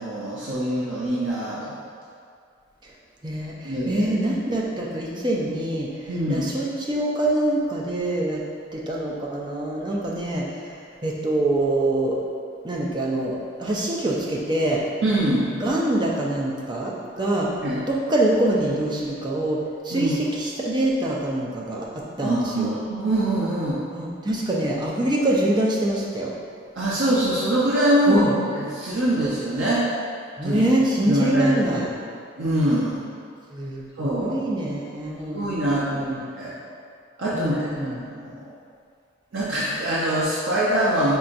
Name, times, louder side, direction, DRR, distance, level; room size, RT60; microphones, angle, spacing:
voice 1, 0.0-1.8 3.6-4.0 6.1-6.5 15.0-15.5 17.6-17.8 19.9-20.2 22.2-23.8 26.7-28.2 28.5-29.8 30.4-30.6 31.1-31.8 32.4-33.0 34.0-34.4 35.3-36.1 36.4-36.5 37.2-38.4 39.3-41.1, right 1 dB, 65° right, -8 dB, 0.6 m, -24 dB
voice 2, 3.2-8.4 8.7-12.2 12.6-14.8 15.6-17.5 17.9-22.8 23.9-26.3 28.1-28.4 30.4-31.9 33.5-36.2 37.3-38.0, right 1 dB, 20° right, -3 dB, 0.5 m, -25 dB
5.5 x 3.3 x 2.6 m, 2.3 s
head